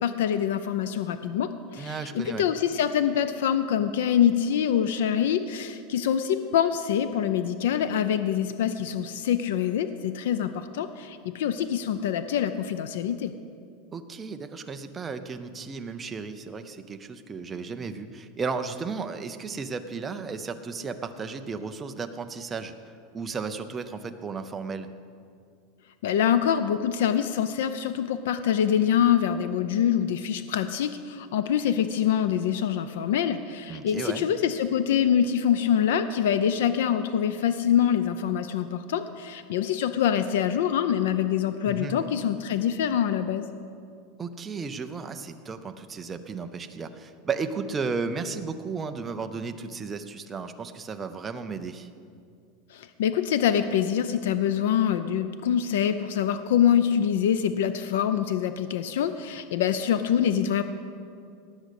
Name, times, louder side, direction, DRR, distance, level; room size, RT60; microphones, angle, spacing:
voice 1, 0.0-13.3 26.0-43.5 52.7-60.6, left 9 dB, 75° left, 11 dB, 0.6 m, -25 dB
voice 2, 1.8-2.4 13.9-22.7 23.1-24.9 33.7-34.3 41.7-42.0 44.2-51.9, right 4 dB, 10° right, 7 dB, 0.5 m, -34 dB
18.5 x 6.3 x 8.2 m, 2.4 s
supercardioid pair, 180°, 0 cm